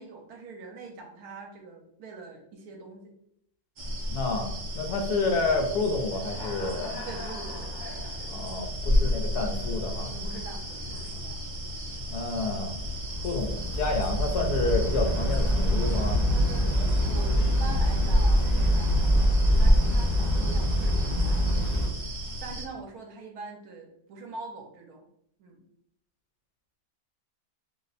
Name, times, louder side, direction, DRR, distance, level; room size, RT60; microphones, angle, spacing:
voice 1, 0.0-3.1 4.7-4.9 7.0-7.7 8.9-9.2 10.1-11.8 16.3-21.8 22.4-25.0 25.4-25.7, right 3 dB, 75° right, 2 dB, 1.2 m, -44 dB
sound 1, 3.8-22.6, equal, 55° right, 0.5 m, -34 dB
voice 2, 4.1-7.1 8.3-10.1 12.1-12.8 13.2-16.2, left 3 dB, 85° left, 3 dB, 1.2 m, -29 dB
Human voice / Cricket, 5.9-11.1, left 3 dB, 60° left, 0.9 m, -44 dB
sound 2, 12.9-21.9, equal, 30° left, 0.9 m, -24 dB
3.0 x 2.1 x 3.9 m, 0.73 s
omnidirectional pair, 1.6 m